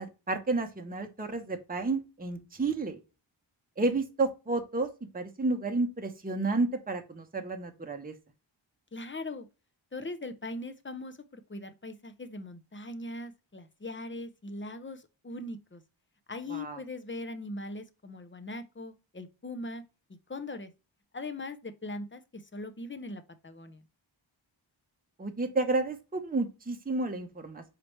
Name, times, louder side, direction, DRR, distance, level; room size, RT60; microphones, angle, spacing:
voice 1, 0.0-3.0 3.8-4.9 5.1-8.1 16.5-16.8 25.2-27.6, right 3 dB, 20° right, 0.8 m, -31 dB
voice 2, 8.9-9.5 9.9-15.8 16.3-19.8 20.3-20.7 21.1-23.8, left 2 dB, 25° left, 0.6 m, -40 dB
4.9 x 3.1 x 3.0 m
wide cardioid pair, 60°, 47 cm